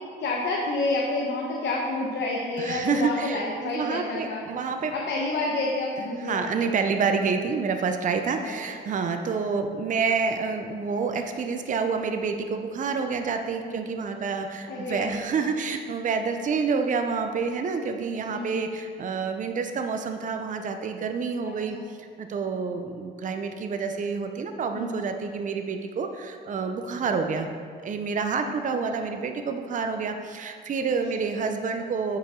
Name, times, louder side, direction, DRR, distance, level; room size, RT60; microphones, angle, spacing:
voice 1, 0.2-4.4 4.9-6.9 8.4-8.9 13.6-13.9 14.7-15.1 18.3-18.7 21.4-21.8 24.7-25.1, left 2 dB, 65° left, -2 dB, 1.0 m, -29 dB
voice 2, 2.6-5.0 6.2-27.5 27.8-32.2, right 5 dB, 40° right, 6 dB, 0.5 m, -28 dB
8.2 x 4.9 x 3.7 m, 2.1 s
cardioid pair, 90°, 20 cm